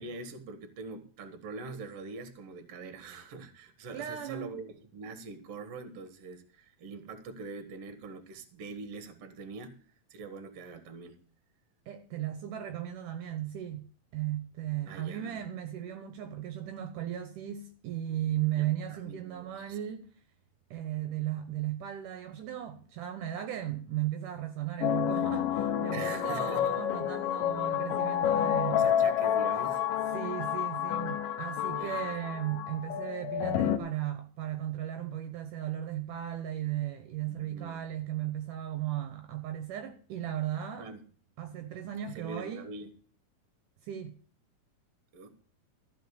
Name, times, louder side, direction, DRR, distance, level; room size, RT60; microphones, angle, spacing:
voice 1, 0.0-9.8 10.1-11.2 14.9-15.4 18.6-19.8 25.9-26.8 28.7-29.9 31.7-32.1 37.3-37.8 40.8-41.1 42.1-42.9 45.1-45.4, right 3 dB, 55° right, 2.1 m, -44 dB
voice 2, 3.9-4.5 11.9-13.8 14.1-20.1 20.7-28.9 30.1-40.9 41.4-42.7 43.8-44.2, right 12 dB, 70° right, 2.3 m, -36 dB
sound 1, 24.8-33.8, left 10 dB, 80° left, 2.3 m, -29 dB
14.5 x 5.4 x 8.0 m
omnidirectional pair, 4.1 m